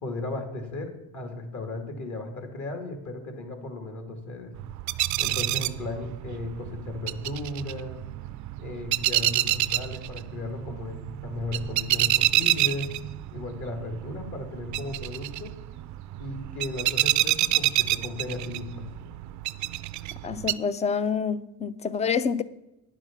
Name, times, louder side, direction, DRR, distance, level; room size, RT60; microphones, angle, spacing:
voice 1, 0.0-4.5 5.2-8.0 8.6-12.9 13.3-15.6 16.2-18.9, left 2 dB, 50° left, 2.1 m, -35 dB
sound 1, 4.5-20.5, right 16 dB, 50° right, 0.4 m, -28 dB
voice 2, 20.2-22.4, left 6 dB, 20° left, 0.3 m, -27 dB
9.8 x 6.2 x 7.3 m
cardioid pair, 120°, 39 cm